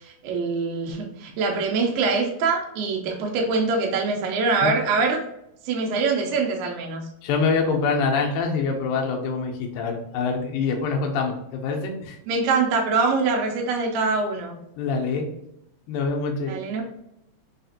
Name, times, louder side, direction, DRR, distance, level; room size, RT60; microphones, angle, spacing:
voice 1, 0.0-5.2 5.7-7.0 12.3-14.6 16.5-16.8, right 4 dB, 80° right, 0 dB, 2.2 m, -24 dB
voice 2, 7.2-12.2 14.8-15.3 15.9-16.5, left 4 dB, 80° left, 1 dB, 2.4 m, -25 dB
5.7 x 2.4 x 2.7 m, 0.80 s
omnidirectional pair, 4.1 m